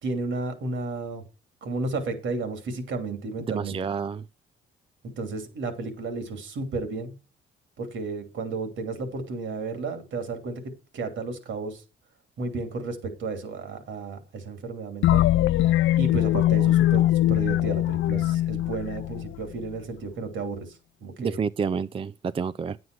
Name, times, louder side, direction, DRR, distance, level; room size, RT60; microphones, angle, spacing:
voice 1, 0.0-1.2 1.6-3.8 5.2-7.1 7.8-10.6 10.9-11.8 12.4-15.2 16.0-20.7 21.0-21.4, right 3 dB, 75° right, 2.8 m, -32 dB
voice 2, 3.5-4.2 21.2-22.8, right 6 dB, 30° right, 0.4 m, -29 dB
sound 1, 15.0-19.7, left 14 dB, 75° left, 0.5 m, -22 dB
9.5 x 8.0 x 4.6 m
cardioid pair, 90°, 20 cm